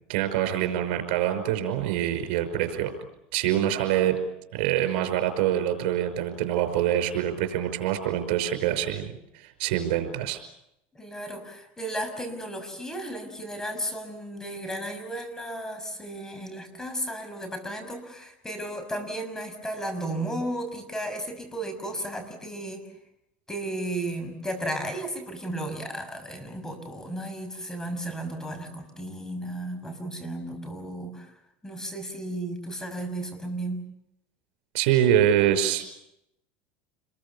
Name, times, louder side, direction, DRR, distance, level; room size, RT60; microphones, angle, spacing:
voice 1, 0.1-2.9 3.3-4.2 4.5-10.4 34.7-36.0, right 11 dB, 75° right, 8 dB, 5.5 m, -25 dB
voice 2, 10.9-22.8 23.5-31.3 31.6-33.8, right 1 dB, 10° left, 7 dB, 6.3 m, -34 dB
29.0 x 22.5 x 7.1 m, 0.82 s
supercardioid pair, 100°, 6 cm